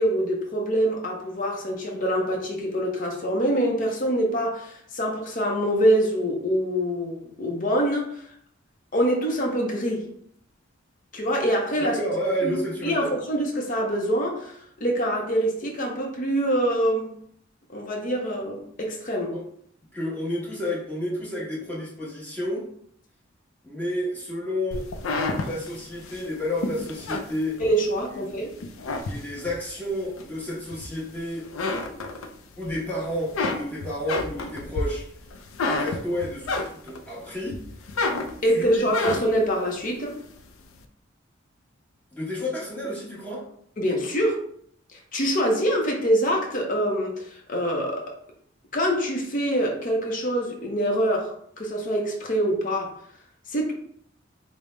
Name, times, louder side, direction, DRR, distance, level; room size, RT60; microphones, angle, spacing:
voice 1, 0.0-8.2 8.9-10.1 11.1-12.0 12.4-12.6 12.8-14.5 14.8-17.1 17.7-19.3 27.6-28.5 38.4-40.2 43.8-44.4 44.9-48.1 48.7-52.9 53.5-53.7, equal, 40° left, 0 dB, 0.6 m, -25 dB
voice 2, 11.8-13.1 19.3-19.4 19.9-22.7 23.6-24.9 25.4-27.6 28.2-28.3 29.1-31.5 32.6-35.1 35.7-37.6 38.5-38.9 42.1-43.4, left 1 dB, 10° left, -6 dB, 1.1 m, -30 dB
sound 1, 24.7-28.1 28.5-29.6 30.2-31.2 31.4-32.7 33.0-37.1 37.5-39.5, left 3 dB, 85° left, 0.4 m, -30 dB
5.0 x 2.0 x 3.2 m, 0.65 s
head